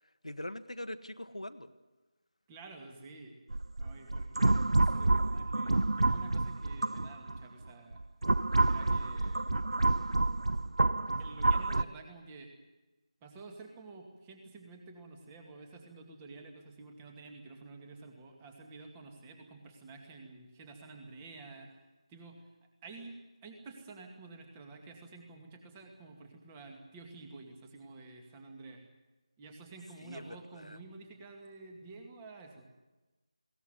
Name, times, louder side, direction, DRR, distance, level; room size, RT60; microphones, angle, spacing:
voice 1, 0.2-1.7 30.0-30.8, left 1 dB, 85° left, 10 dB, 1.6 m, -42 dB
voice 2, 2.5-3.4 3.8-8.0 8.6-9.4 11.2-12.5 13.2-21.8 22.1-22.5 22.8-28.8 29.4-32.7, right 3 dB, 15° right, 3 dB, 2.3 m, -50 dB
sound 1, 3.5-7.4 7.9-11.8, right 2 dB, 65° right, 0.6 m, -28 dB
21.5 x 18.5 x 9.3 m, 1.1 s
figure-of-eight pair, 165°, 3 cm